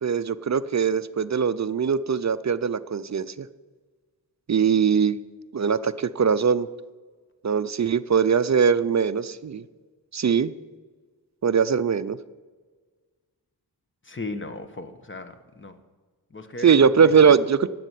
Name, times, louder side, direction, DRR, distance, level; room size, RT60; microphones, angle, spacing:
voice 1, 0.0-3.5 4.5-5.2 5.5-6.7 7.4-9.6 10.1-10.5 11.4-12.2 16.6-17.7, right 6 dB, 45° right, 13 dB, 0.5 m, -21 dB
voice 2, 14.1-15.8 16.3-16.7 17.0-17.1, left 2 dB, 30° left, 9 dB, 1.2 m, -36 dB
12.0 x 9.2 x 8.3 m, 1.4 s
wide cardioid pair, 100°, 41 cm